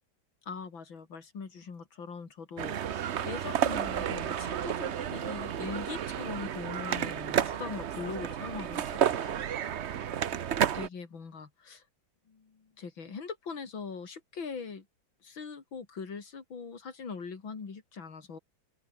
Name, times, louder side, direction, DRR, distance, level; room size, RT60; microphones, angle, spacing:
voice 1, 0.4-9.5 10.3-10.4 10.7-11.8 12.3-14.9 15.2-18.4, left 5 dB, 75° left, 3.8 m, -41 dB
sound 1, 2.6-10.9, right 9 dB, 60° right, 0.7 m, -31 dB
open air
omnidirectional pair, 2.1 m